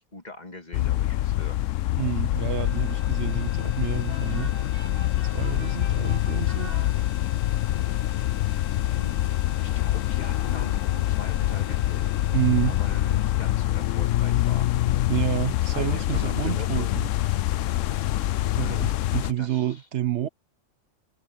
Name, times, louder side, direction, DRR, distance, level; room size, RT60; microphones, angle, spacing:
voice 1, 0.0-1.6 8.8-9.2 9.6-12.2 12.6-14.7 15.7-16.9 18.5-18.8 19.4-19.8, left 2 dB, 35° left, 2.4 m, -42 dB
sound 1, 0.7-19.3, left 14 dB, 90° left, 1.0 m, -25 dB
voice 2, 2.0-4.5 5.2-6.7 12.3-12.8 15.1-17.1 18.5-20.3, right 11 dB, 70° right, 1.0 m, -29 dB
sound 2, 2.3-14.5, left 6 dB, 65° left, 1.3 m, -46 dB
sound 3, 4.1-7.6, right 2 dB, 35° right, 4.0 m, -46 dB
omnidirectional pair, 1.3 m